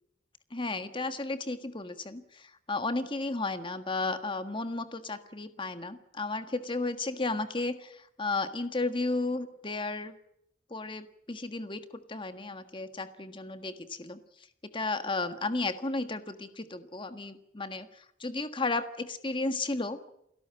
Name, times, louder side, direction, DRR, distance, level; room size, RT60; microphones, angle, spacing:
voice 1, 0.5-10.1 10.7-14.2 14.6-20.1, left 3 dB, 30° left, 9 dB, 1.5 m, -34 dB
28.5 x 13.0 x 8.9 m, 0.79 s
head